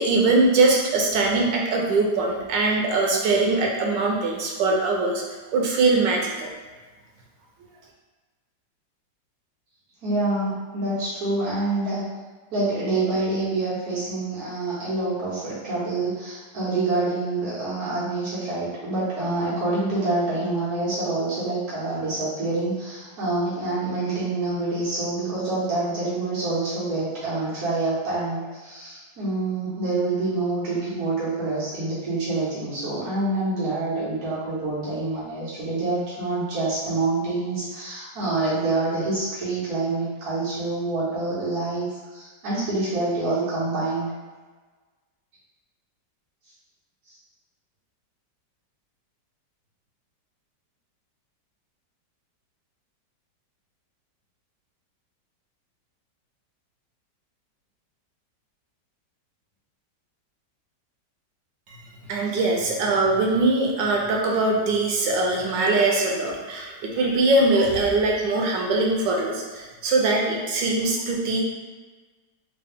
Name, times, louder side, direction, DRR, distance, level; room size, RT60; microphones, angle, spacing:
voice 1, 0.0-5.2 5.5-6.5 61.7-61.8 62.1-71.4, right 2 dB, 85° right, -1 dB, 1.3 m, -22 dB
voice 2, 10.0-12.0 12.5-44.1 47.1-47.2, right 2 dB, 55° right, -10 dB, 1.6 m, -26 dB
3.8 x 2.3 x 3.5 m, 1.3 s
omnidirectional pair, 1.9 m